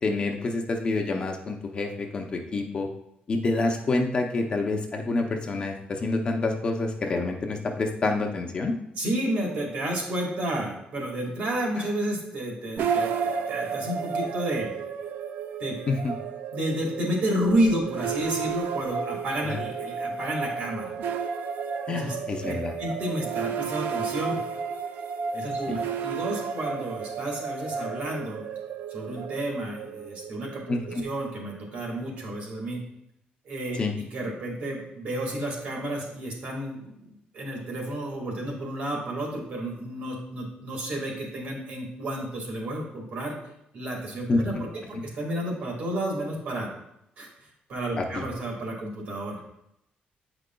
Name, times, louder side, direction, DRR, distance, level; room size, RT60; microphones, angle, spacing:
voice 1, 0.0-2.9 3.3-8.8 15.9-16.1 19.4-19.6 21.9-22.7 25.7-25.8 30.7-31.0 33.8-34.0 44.3-44.4 48.0-48.3, left 3 dB, 30° left, 2 dB, 0.6 m, -27 dB
voice 2, 9.0-14.7 15.6-15.8 16.5-21.0 21.9-22.1 22.4-24.4 25.3-28.4 28.9-32.8 33.4-33.8 34.1-43.4 43.7-44.5 44.9-46.7 47.2-49.4, right 1 dB, 50° right, -1 dB, 1.8 m, -31 dB
sound 1, 12.8-31.9, right 6 dB, 70° right, 0.4 m, -33 dB
8.7 x 5.0 x 2.2 m, 0.80 s
cardioid pair, 165°, 3 cm